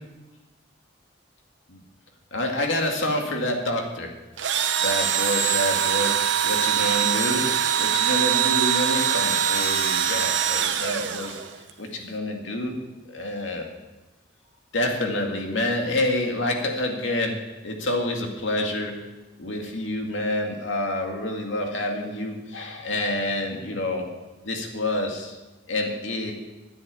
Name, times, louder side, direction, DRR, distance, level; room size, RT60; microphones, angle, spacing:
voice 1, 2.3-4.1 4.8-6.2 6.4-7.4 7.8-11.4 11.8-12.8 13.1-13.7 14.7-17.3 17.6-18.9 19.4-24.0 24.4-25.4 25.7-26.3, left 1 dB, 85° left, 2 dB, 2.1 m, -27 dB
Engine / Drill, 4.4-11.7, right 9 dB, 70° right, 0.9 m, -23 dB
10.0 x 8.1 x 8.4 m, 1.1 s
head